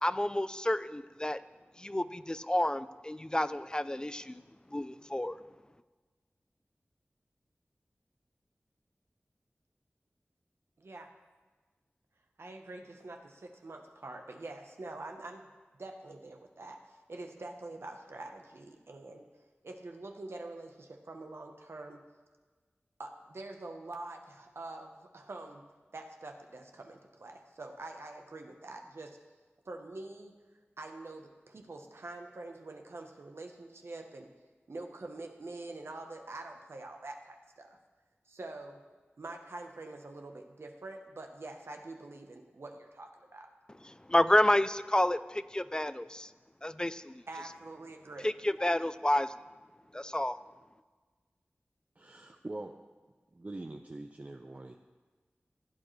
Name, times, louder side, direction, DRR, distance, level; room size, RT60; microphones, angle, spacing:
voice 1, 0.0-1.4 1.8-4.4 4.7-5.4 44.1-46.3 46.6-47.2 48.2-49.3 49.9-50.4, left 1 dB, 20° left, 14 dB, 0.3 m, -29 dB
voice 2, 12.4-15.5 15.8-19.3 19.6-22.0 23.0-25.6 25.9-29.2 29.7-30.3 30.8-34.3 34.7-37.8 38.3-38.8 39.2-43.5 47.3-48.3, right 2 dB, 75° right, 3 dB, 0.9 m, -45 dB
voice 3, 52.0-52.7 53.3-54.8, right 2 dB, 35° right, 3 dB, 0.6 m, -43 dB
15.5 x 8.9 x 3.2 m, 1.4 s
wide cardioid pair, 50°, 4 cm